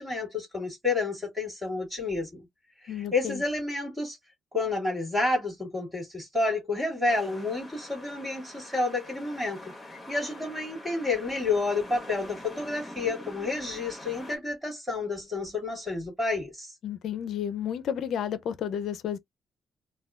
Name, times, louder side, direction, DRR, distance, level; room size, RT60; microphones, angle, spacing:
voice 1, 0.0-2.4 2.8-4.2 4.5-9.7 10.1-16.7, left 3 dB, 15° right, 2.1 m, -30 dB
voice 2, 2.9-3.4 16.8-19.2, left 9 dB, 70° left, 0.5 m, -32 dB
sound 1, 7.1-14.4, left 1 dB, 15° left, 1.7 m, -45 dB
3.4 x 2.2 x 2.4 m
cardioid pair, 90°, 0 cm